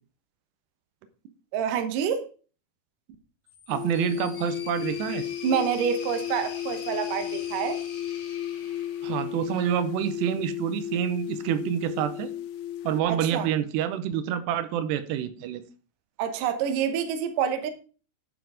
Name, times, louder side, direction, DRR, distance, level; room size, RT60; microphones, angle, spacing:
voice 1, 1.5-2.3 5.4-7.8 13.1-13.5 16.2-17.7, right 8 dB, 65° right, 2.3 m, -27 dB
sound 1, 3.5-9.7, left 6 dB, 60° left, 2.5 m, -44 dB
sound 2, 3.7-13.0, left 11 dB, 80° left, 2.4 m, -34 dB
voice 2, 3.7-5.3 9.0-12.3 12.8-15.6, right 10 dB, 85° right, 2.9 m, -27 dB
11.5 x 6.2 x 4.8 m
omnidirectional pair, 4.8 m